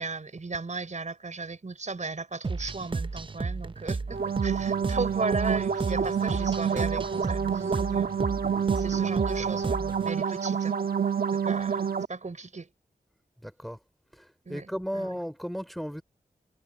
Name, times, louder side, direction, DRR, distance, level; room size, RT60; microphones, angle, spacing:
voice 1, 0.0-8.1 8.8-10.8 11.4-12.7 14.5-15.1, right 3 dB, 50° right, 5.3 m, -36 dB
sound 1, 2.4-10.1, right 4 dB, 35° right, 0.6 m, -33 dB
sound 2, 4.1-12.1, right 7 dB, 75° right, 1.4 m, -28 dB
voice 2, 13.4-13.8 14.1-16.0, equal, ahead, 3.1 m, -35 dB
cardioid pair, 60°, 16 cm